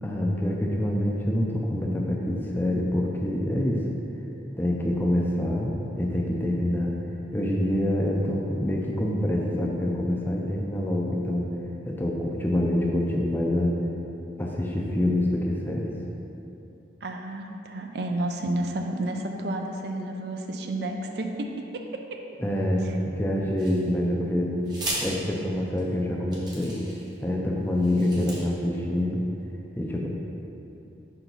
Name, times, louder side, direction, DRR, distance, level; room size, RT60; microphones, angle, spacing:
voice 1, 0.0-3.8 4.6-7.0 7.3-11.5 11.9-13.7 14.4-15.9 22.4-24.5 25.0-26.8 27.2-29.2 29.7-30.1, left 1 dB, 10° left, -2 dB, 0.5 m, -26 dB
voice 2, 17.0-21.6 21.9-22.0, right 1 dB, 60° right, 3 dB, 0.4 m, -31 dB
sound 1, 23.6-24.1 24.6-25.0 25.8-25.9 26.3-27.1 27.7-28.4, right 1 dB, 25° right, 0.9 m, -35 dB
5.7 x 4.5 x 4.0 m, 2.9 s
head